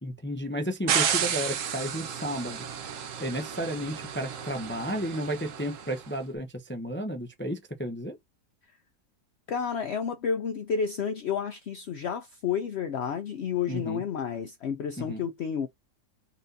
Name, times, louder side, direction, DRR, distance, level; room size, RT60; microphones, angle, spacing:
voice 1, 0.0-2.6 3.2-8.2 13.7-14.0 15.0-15.2, equal, 15° left, 0.5 m, -33 dB
sound 1, 0.9-6.0, right 8 dB, 60° right, 1.0 m, -32 dB
voice 2, 9.5-15.7, left 7 dB, 70° left, 0.6 m, -30 dB
4.2 x 2.7 x 3.8 m
omnidirectional pair, 1.8 m